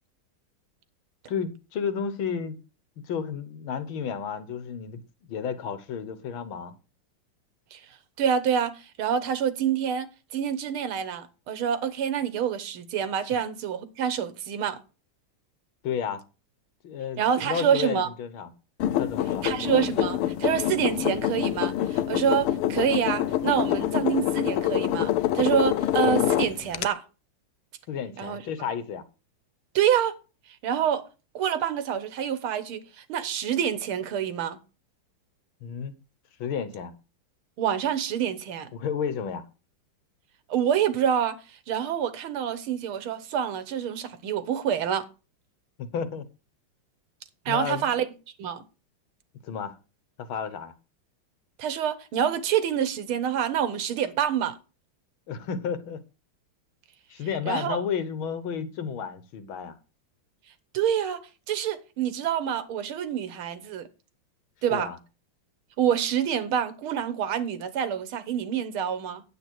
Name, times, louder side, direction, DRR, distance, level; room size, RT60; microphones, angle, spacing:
voice 1, 1.3-2.6 3.1-5.0 5.3-6.7 15.8-16.2 16.8-18.5 19.0-19.5 27.9-29.0 35.6-35.9 36.4-36.9 38.7-39.5 45.8-46.3 47.5-47.9 49.4-49.8 50.2-50.7 55.3-56.0 57.1-59.8 64.7-65.0, left 7 dB, 70° left, 1.8 m, -32 dB
voice 2, 8.2-14.8 17.2-18.1 19.4-27.0 28.2-28.4 29.8-30.2 30.6-31.0 31.4-34.6 37.6-38.7 40.5-41.4 41.7-45.1 47.5-48.0 48.4-48.6 51.6-54.6 57.5-57.8 60.7-63.9 64.6-64.9 65.8-69.2, right 8 dB, 75° right, 1.9 m, -27 dB
sound 1, 18.8-26.9, left 12 dB, 90° left, 1.6 m, -26 dB
9.4 x 8.3 x 4.6 m
omnidirectional pair, 2.4 m